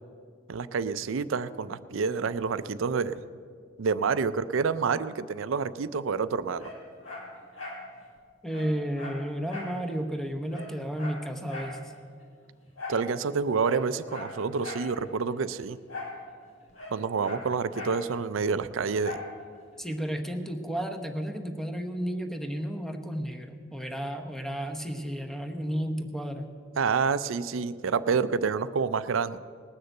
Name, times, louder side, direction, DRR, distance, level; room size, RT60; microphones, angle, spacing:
voice 1, 0.5-3.2 3.8-6.7 12.9-15.8 16.9-19.2 26.8-29.4, right 5 dB, 85° right, 14 dB, 0.5 m, -28 dB
Dog, 6.6-7.9 8.2-8.3 8.5-9.8 10.1-10.2 10.5-11.8 12.8-13.1 13.6-14.9 15.9-16.2 16.5-18.0 19.0-19.3 19.8-19.9, left 2 dB, 80° left, 3.0 m, -40 dB
voice 2, 8.4-11.8 19.8-26.5, equal, ahead, 6 dB, 0.9 m, -32 dB
19.0 x 6.6 x 7.9 m, 2.1 s
head